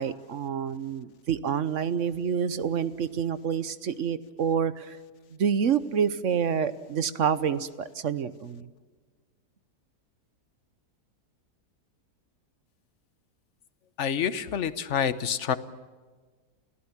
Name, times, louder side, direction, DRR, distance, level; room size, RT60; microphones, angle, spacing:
voice 1, 0.0-5.0 5.4-8.7, right 7 dB, 55° right, 14 dB, 1.1 m, -28 dB
voice 2, 14.0-15.6, left 8 dB, 50° left, 13 dB, 1.2 m, -27 dB
29.5 x 17.5 x 7.3 m, 1.4 s
omnidirectional pair, 1.7 m